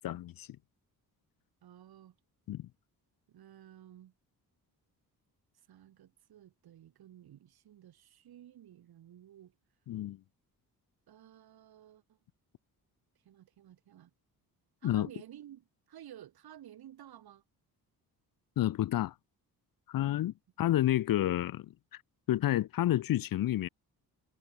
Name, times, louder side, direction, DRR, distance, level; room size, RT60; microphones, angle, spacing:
voice 1, 0.0-0.5 2.5-2.7 9.9-10.2 14.8-15.1 18.6-19.1 19.9-22.0 22.3-23.7, left 13 dB, 60° left, 0.7 m, -30 dB
voice 2, 1.6-2.1 3.3-4.1 5.7-9.5 11.1-12.2 13.2-14.1 14.8-17.4, right 11 dB, 75° right, 2.5 m, -53 dB
wide cardioid pair, 140°, 38 cm